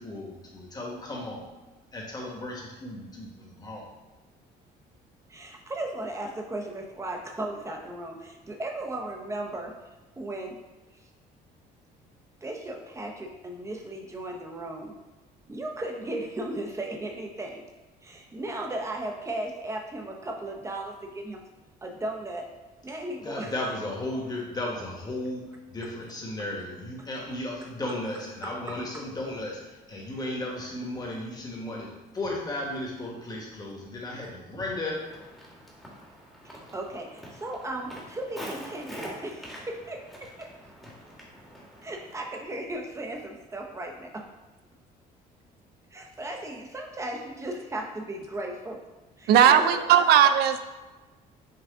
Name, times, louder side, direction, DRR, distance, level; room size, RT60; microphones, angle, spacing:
voice 1, 0.0-1.5 1.9-3.9 23.2-34.9, left 1 dB, 25° left, -2 dB, 1.2 m, -35 dB
voice 2, 5.3-9.7 10.2-10.6 12.4-14.9 15.5-17.6 18.0-21.4 21.8-22.5 22.8-23.5 36.4-40.5 41.8-44.3 45.9-48.8 49.2-50.1, right 1 dB, 15° right, 2 dB, 0.7 m, -36 dB
Walk footsteps, 34.9-42.3, equal, ahead, 1.1 m, -45 dB
voice 3, 49.3-50.6, right 9 dB, 75° right, 10 dB, 0.4 m, -18 dB
5.7 x 2.4 x 3.6 m, 1.2 s
cardioid pair, 110°, 17 cm